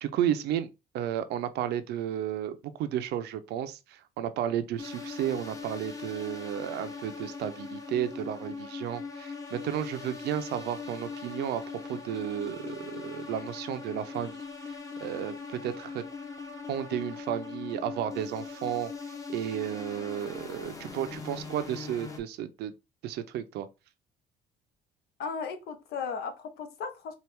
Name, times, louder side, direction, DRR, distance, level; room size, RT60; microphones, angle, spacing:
voice 1, 0.0-0.7 0.9-11.6 11.9-14.7 15.0-16.0 16.7-18.9 19.3-22.7 23.0-23.7, right 10 dB, 75° right, 0.6 m, -33 dB
sound 1, 4.8-22.2, left 4 dB, 20° left, 0.9 m, -40 dB
voice 2, 25.2-27.1, left 5 dB, 75° left, 0.9 m, -36 dB
4.4 x 2.4 x 3.4 m
cardioid pair, 110°, 17 cm